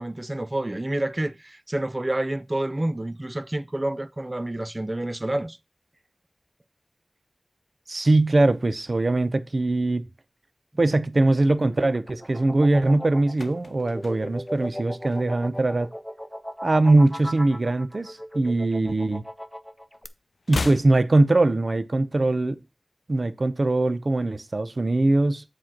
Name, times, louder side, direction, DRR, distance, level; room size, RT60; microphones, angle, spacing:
voice 1, 0.0-5.6, right 1 dB, 30° right, 0.5 m, -28 dB
voice 2, 7.9-10.0 10.8-15.9 16.6-19.2 20.5-22.6 23.1-25.4, right 2 dB, 60° right, 0.7 m, -21 dB
sound 1, 11.6-20.1, equal, 5° left, 0.8 m, -37 dB
sound 2, 13.3-15.7 15.9-16.2 16.5-18.0 18.3-19.6 19.9-22.0 22.2-22.3, left 3 dB, 90° left, 0.5 m, -38 dB
7.6 x 4.3 x 5.9 m
wide cardioid pair, 55°, 0 cm